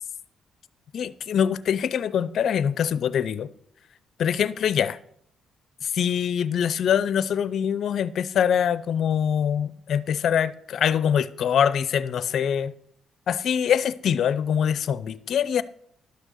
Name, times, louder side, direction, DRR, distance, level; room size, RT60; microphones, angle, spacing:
voice 1, 0.9-3.5 4.2-5.0 5.8-12.7 13.3-15.6, left 8 dB, 65° left, 0.5 m, -24 dB
11.5 x 6.4 x 6.4 m
cardioid pair, 90°, 0 cm